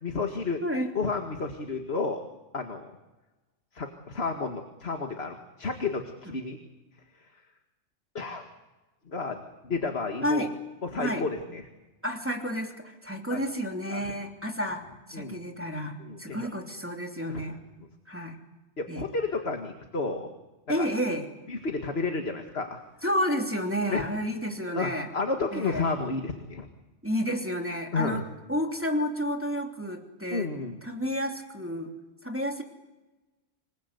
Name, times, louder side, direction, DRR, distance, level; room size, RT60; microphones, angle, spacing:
voice 1, 0.0-0.6 1.0-2.2 2.5-2.9 3.7-6.6 8.1-8.5 9.1-10.5 10.8-11.6 13.3-13.4 13.9-14.1 15.1-15.4 16.0-16.5 17.3-17.4 18.8-20.3 20.8-20.9 21.5-22.8 23.9-24.0 24.7-26.7 27.9-28.2 30.3-30.8, left 4 dB, 55° left, 4 dB, 2.2 m, -31 dB
voice 2, 0.6-0.9 10.2-10.5 11.0-11.2 12.0-14.8 15.1-17.6 18.1-18.4 18.9-19.1 20.7-21.3 23.0-25.1 25.5-25.8 27.0-30.5 30.8-31.9 32.2-32.6, equal, 10° right, 2 dB, 3.1 m, -30 dB
27.5 x 20.0 x 8.3 m, 1.1 s
omnidirectional pair, 1.3 m